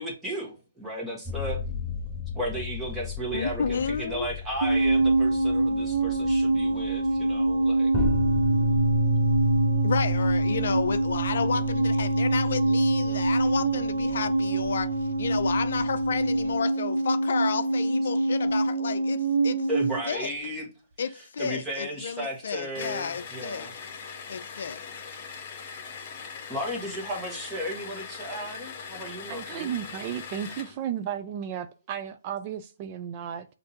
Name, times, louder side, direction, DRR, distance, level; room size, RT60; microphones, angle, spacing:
voice 1, 0.0-1.6 2.3-7.9 19.7-20.7 21.4-23.7 26.5-29.7, equal, 10° right, 1.4 m, -34 dB
sound 1, 1.3-16.5, equal, 5° left, 1.0 m, -31 dB
voice 2, 3.3-4.3 9.8-14.9 15.2-19.7 20.1-20.3 21.0-23.7 24.3-24.8, left 6 dB, 60° left, 0.5 m, -31 dB
sound 2, 4.6-20.0, right 2 dB, 65° right, 1.0 m, -25 dB
sound 3, 22.7-30.8, left 6 dB, 30° left, 1.2 m, -41 dB
voice 3, 29.3-33.5, right 9 dB, 30° right, 0.3 m, -34 dB
6.3 x 2.7 x 2.9 m
hypercardioid pair, 145°, 0 cm